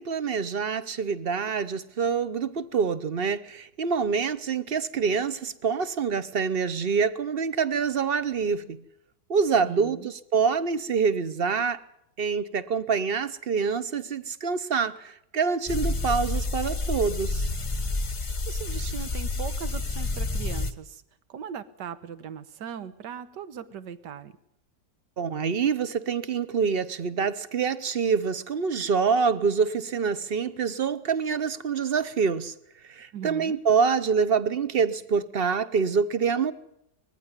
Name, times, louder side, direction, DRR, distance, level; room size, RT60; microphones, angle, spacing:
voice 1, 0.0-8.8 9.3-11.8 12.2-17.5 25.2-32.5 32.8-36.5, right 5 dB, 40° right, 0.9 m, -26 dB
voice 2, 9.6-10.1 18.5-21.0 21.3-24.3 33.1-33.6, right 8 dB, 80° right, 1.7 m, -38 dB
sound 1, 15.7-20.7, left 2 dB, 25° left, 0.8 m, -29 dB
20.5 x 15.0 x 9.7 m
omnidirectional pair, 1.8 m